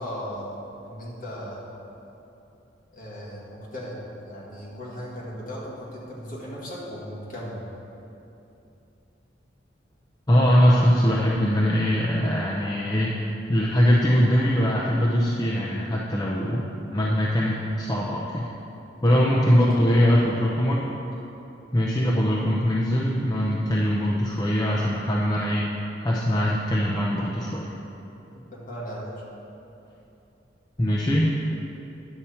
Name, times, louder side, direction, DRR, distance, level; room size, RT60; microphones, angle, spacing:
voice 1, 0.0-1.7 2.9-4.0 4.3-7.7 19.5-20.2 28.3-29.2, equal, 45° left, -6 dB, 2.0 m, -36 dB
voice 2, 10.3-13.1 13.5-18.5 19.0-20.8 21.7-25.6 26.0-27.7 30.8-31.3, equal, 20° left, -5 dB, 0.6 m, -22 dB
9.8 x 6.9 x 4.3 m, 2.9 s
head